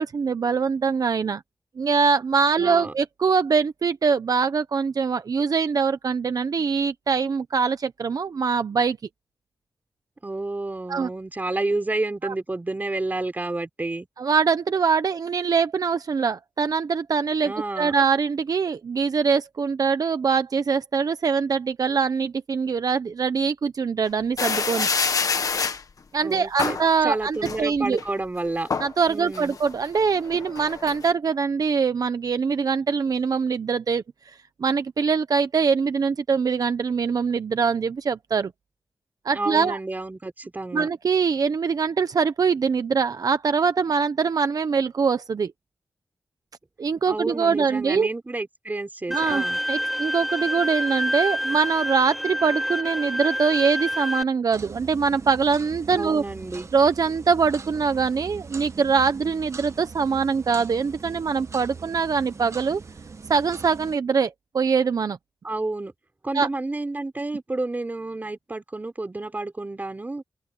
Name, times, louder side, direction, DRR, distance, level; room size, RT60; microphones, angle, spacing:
voice 1, 0.0-1.4 1.8-9.0 10.9-11.1 12.2-12.3 14.2-24.9 26.1-28.0 28.8-34.0 34.6-38.5 39.2-39.8 40.7-45.5 46.8-48.1 49.1-56.2 56.7-62.8 63.3-65.2 66.3-66.5, right 5 dB, 60° right, 1.0 m, -23 dB
voice 2, 2.6-2.9 10.2-14.1 17.4-17.9 26.2-28.7 29.1-29.6 39.3-40.9 47.1-49.6 55.9-56.7 65.4-65.9 66.2-70.2, right 2 dB, 25° right, 4.1 m, -30 dB
sound 1, 24.4-25.8 26.6-26.9 27.4-28.0 28.4-28.9 29.3-31.1, left 5 dB, 55° left, 1.6 m, -26 dB
Bowed string instrument, 49.1-54.2, equal, ahead, 2.4 m, -27 dB
sound 2, 54.5-64.0, right 4 dB, 45° right, 1.3 m, -41 dB
wide cardioid pair, 105°, 7 cm